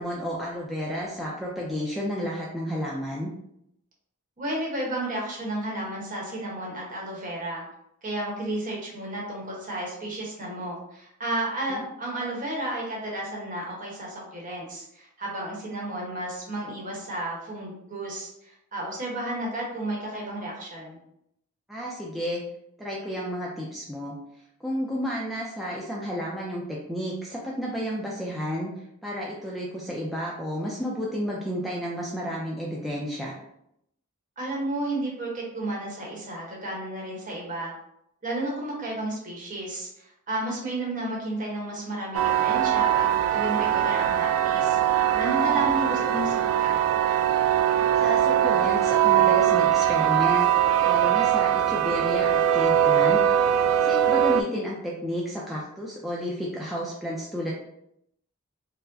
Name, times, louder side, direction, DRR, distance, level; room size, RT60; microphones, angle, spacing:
voice 1, 0.0-3.3 11.7-11.8 21.7-22.4 22.8-24.1 24.6-28.7 29.0-33.4 45.1-45.6 48.0-50.5 50.8-53.2 53.8-57.5, equal, ahead, -5 dB, 0.4 m, -31 dB
voice 2, 4.4-7.6 8.0-21.0 34.4-37.7 38.2-44.8 45.2-46.9, right 1 dB, 40° right, -3 dB, 1.0 m, -32 dB
sound 1, 42.1-54.4, right 10 dB, 80° right, 0.3 m, -21 dB
4.4 x 2.1 x 2.6 m, 0.77 s
head